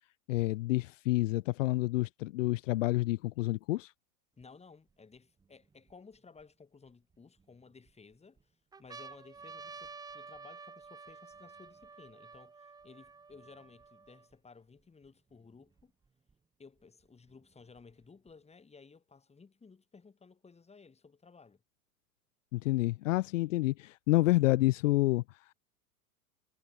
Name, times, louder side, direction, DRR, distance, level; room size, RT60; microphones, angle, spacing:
voice 1, 0.3-3.9 22.5-25.5, left 18 dB, 55° left, 0.9 m, -29 dB
voice 2, 4.4-15.9 16.6-21.6, left 4 dB, 15° left, 5.8 m, -57 dB
sound 1, 4.4-4.5 5.2-6.4 7.1-7.9 8.4-8.5 8.7-14.3 15.1-15.2 15.3-16.3 17.3-18.3, right 4 dB, 10° right, 0.8 m, -51 dB
figure-of-eight pair, 95°, 45 cm